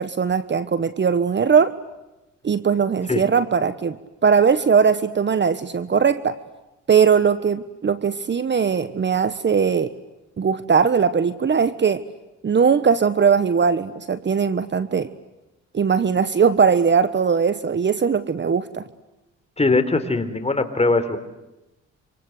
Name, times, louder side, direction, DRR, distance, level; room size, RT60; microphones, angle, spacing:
voice 1, 0.0-1.8 2.4-4.0 4.2-6.4 6.9-9.9 10.4-12.0 12.4-15.1 15.7-18.8, right 6 dB, 35° right, 14 dB, 1.3 m, -19 dB
voice 2, 19.6-21.2, left 3 dB, 20° left, 9 dB, 4.0 m, -20 dB
27.0 x 27.0 x 8.1 m, 0.99 s
cardioid pair, 90°, 30 cm